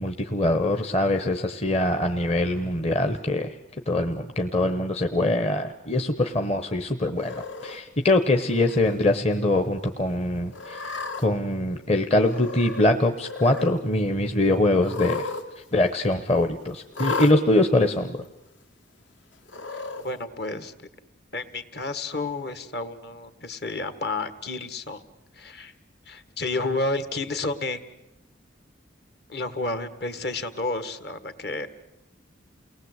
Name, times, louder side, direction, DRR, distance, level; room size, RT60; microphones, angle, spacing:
voice 1, 0.0-3.5 3.9-15.3 15.7-18.2, left 1 dB, 30° left, 6 dB, 1.0 m, -23 dB
Cat, 7.2-7.8 8.5-8.9 9.3-9.4 10.5-11.2 12.2-12.9 13.1-13.7 14.8-15.4 15.7-15.8 16.9-17.3 18.2-18.3 19.5-20.0, left 4 dB, 75° left, 2.2 m, -33 dB
voice 2, 20.0-20.9 21.3-25.0 25.3-25.7 26.1-27.8 29.3-31.7, left 2 dB, 55° left, 10 dB, 1.7 m, -31 dB
29.0 x 19.5 x 8.1 m, 0.94 s
head